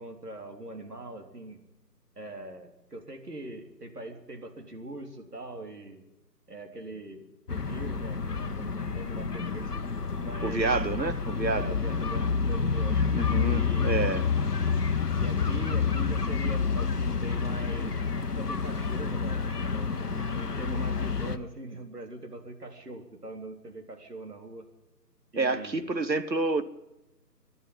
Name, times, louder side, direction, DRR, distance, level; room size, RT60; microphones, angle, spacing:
voice 1, 0.0-1.6 2.2-6.0 6.5-10.7 11.5-14.0 15.2-17.9 18.4-24.7 25.3-25.9, right 2 dB, 65° right, 3.7 m, -42 dB
sound 1, 7.5-21.4, left 5 dB, 65° left, 1.2 m, -29 dB
voice 2, 10.4-11.8 13.1-14.3 25.3-26.7, right 3 dB, 85° right, 1.5 m, -29 dB
26.0 x 11.0 x 9.3 m
figure-of-eight pair, 155°, 50 cm